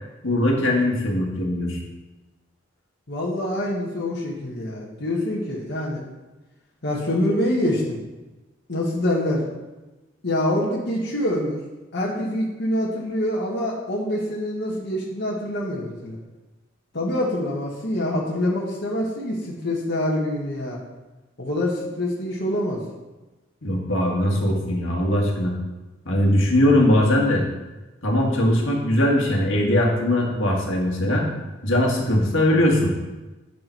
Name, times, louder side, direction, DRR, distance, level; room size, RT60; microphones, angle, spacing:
voice 1, 0.2-1.8 23.6-25.5 26.1-27.4 28.0-31.3 31.6-32.9, left 1 dB, 80° left, -1 dB, 1.8 m, -20 dB
voice 2, 3.1-6.0 6.8-8.0 8.7-9.4 10.2-11.6 11.9-16.2 16.9-20.8 21.4-22.8, left 1 dB, 60° left, -4 dB, 1.5 m, -25 dB
8.7 x 6.2 x 4.5 m, 1.1 s
head